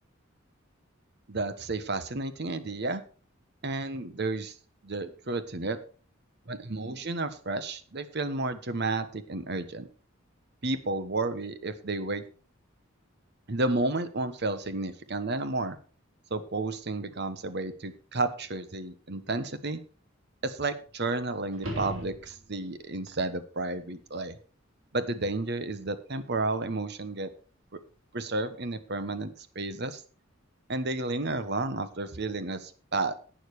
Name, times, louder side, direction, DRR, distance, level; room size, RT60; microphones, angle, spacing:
voice 1, 1.3-3.0 3.6-4.5 4.8-5.8 6.5-9.9 10.6-12.3 13.5-15.8 16.3-19.8 20.4-24.4 24.9-27.3 27.7-27.8 28.1-30.0 30.7-33.1, right 2 dB, 55° right, 12 dB, 1.2 m, -32 dB
sound 1, 21.5-22.8 27.6-27.7, equal, 85° right, 4.0 m, -37 dB
11.5 x 9.1 x 4.8 m, 0.38 s
head